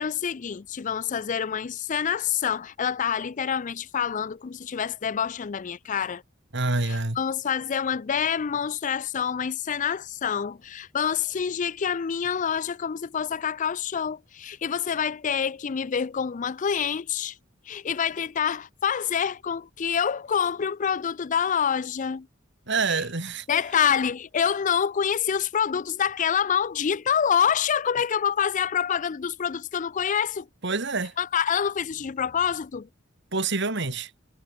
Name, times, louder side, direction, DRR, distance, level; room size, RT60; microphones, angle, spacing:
voice 1, 0.0-6.2 6.8-17.4 17.7-22.3 22.8-23.0 23.5-30.5 31.2-32.9, left 7 dB, 40° left, 0.4 m, -27 dB
voice 2, 6.5-7.2 22.7-23.4 30.6-31.1 33.3-34.1, right 3 dB, 60° right, 2.8 m, -26 dB
head